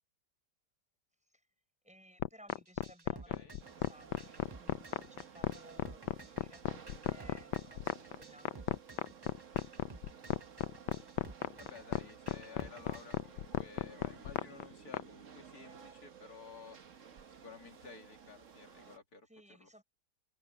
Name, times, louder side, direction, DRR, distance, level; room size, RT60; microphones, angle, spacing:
voice 1, 1.8-8.8 19.3-19.8, equal, 5° right, 6.7 m, -60 dB
sound 1, 2.2-15.0, left 14 dB, 85° left, 1.2 m, -34 dB
sound 2, 2.5-13.2, right 3 dB, 25° right, 0.6 m, -53 dB
voice 2, 3.3-3.6 11.6-16.8 17.3-19.8, left 5 dB, 60° left, 3.0 m, -54 dB
sound 3, 3.6-19.0, right 7 dB, 50° right, 1.5 m, -55 dB
omnidirectional pair, 1.8 m